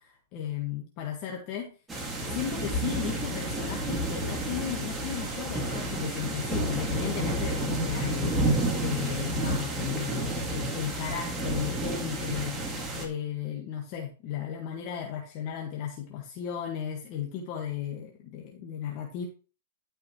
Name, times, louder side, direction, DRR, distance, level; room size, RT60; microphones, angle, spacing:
voice 1, 0.0-1.7 2.3-8.4 8.8-12.6 13.0-19.2, left 9 dB, 40° left, 0 dB, 1.8 m, -35 dB
sound 1, 1.9-13.1, right 1 dB, 15° right, 2.2 m, -30 dB
12.0 x 5.6 x 3.2 m, 0.36 s
hypercardioid pair, 135°, 0 cm